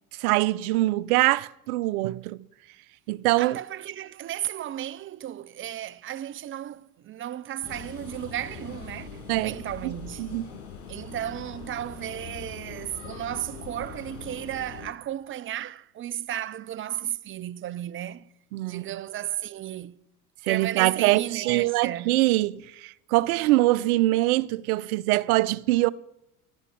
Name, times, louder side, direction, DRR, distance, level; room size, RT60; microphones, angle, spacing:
voice 1, 0.1-2.4 3.1-3.6 9.3-9.6 9.8-10.5 18.5-18.8 20.4-25.9, right 18 dB, 70° right, 0.7 m, -24 dB
voice 2, 3.4-10.3 10.9-18.3 18.7-20.0 20.5-22.2, right 12 dB, 30° right, 0.5 m, -34 dB
sound 1, 7.6-14.9, left 6 dB, 65° left, 6.9 m, -42 dB
12.0 x 8.2 x 9.9 m
hypercardioid pair, 80°, 45 cm